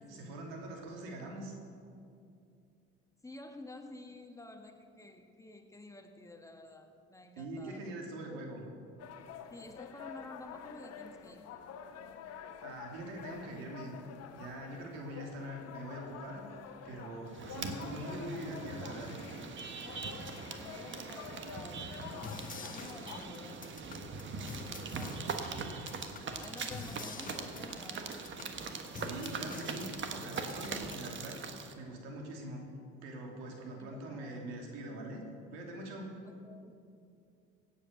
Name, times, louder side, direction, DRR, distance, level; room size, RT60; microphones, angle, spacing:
voice 1, 0.1-1.5 7.4-8.6 12.6-13.9 14.3-16.4 16.8-19.2 28.9-31.4 31.8-32.6 33.0-35.2 35.5-36.1, right 1 dB, 85° right, 1 dB, 2.7 m, -43 dB
voice 2, 3.2-7.8 8.2-8.4 9.5-11.6 20.6-28.1 33.8-34.4 36.2-36.7, left 2 dB, 10° left, 5 dB, 1.4 m, -51 dB
sound 1, 9.0-23.2, left 8 dB, 60° left, 1.2 m, -48 dB
sound 2, 17.3-31.7, right 4 dB, 40° right, 1.4 m, -42 dB
sound 3, 22.2-31.2, left 5 dB, 30° left, 1.1 m, -48 dB
16.5 x 8.5 x 6.6 m, 2.5 s
supercardioid pair, 85°, 29 cm